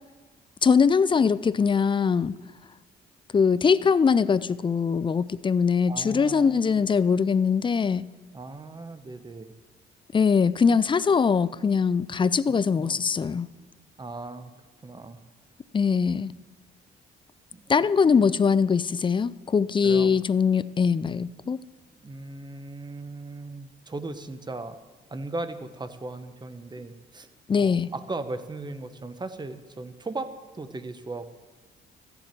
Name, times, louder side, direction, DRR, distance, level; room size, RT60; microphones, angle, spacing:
voice 1, 0.6-2.3 3.3-8.1 10.1-13.5 15.7-16.3 17.7-21.6 27.5-27.9, left 6 dB, 25° left, 17 dB, 0.4 m, -22 dB
voice 2, 5.9-6.5 8.3-9.6 12.8-13.0 14.0-14.5 14.8-15.2 17.5-18.2 19.8-20.2 22.0-24.8 25.1-27.3 27.6-31.3, right 2 dB, 20° right, 11 dB, 0.9 m, -37 dB
14.0 x 10.5 x 4.5 m, 1.3 s
cardioid pair, 90°, 20 cm